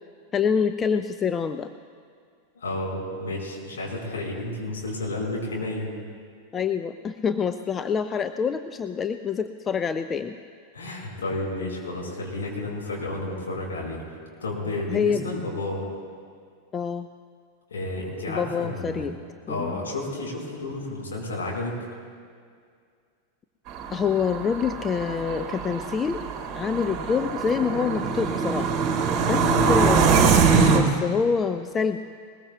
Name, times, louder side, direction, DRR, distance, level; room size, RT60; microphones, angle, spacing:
voice 1, 0.3-1.7 6.5-10.4 14.6-15.3 16.7-17.1 18.3-19.2 19.5-19.8 23.9-26.2 26.5-28.7 29.2-32.0, left 6 dB, 20° left, 9 dB, 0.4 m, -26 dB
voice 2, 2.5-5.9 10.7-14.0 14.4-15.8 17.7-19.1 19.5-21.8 29.5-29.8, left 2 dB, 65° left, -3 dB, 4.5 m, -31 dB
sound 1, 23.7-30.8, right 5 dB, 30° right, 1.9 m, -23 dB
21.0 x 21.0 x 2.3 m, 2.1 s
figure-of-eight pair, 90°, 0 cm